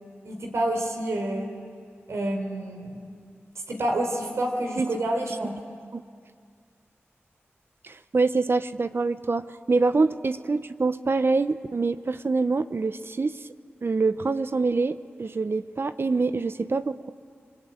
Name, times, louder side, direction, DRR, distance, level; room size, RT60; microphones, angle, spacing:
voice 1, 0.2-1.5 2.1-3.0 3.7-5.6, right 1 dB, 80° right, 3 dB, 4.2 m, -28 dB
voice 2, 7.8-13.4 13.8-17.1, right 3 dB, 55° right, 12 dB, 0.7 m, -25 dB
28.5 x 22.0 x 9.0 m, 2.2 s
cardioid pair, 45°, 5 cm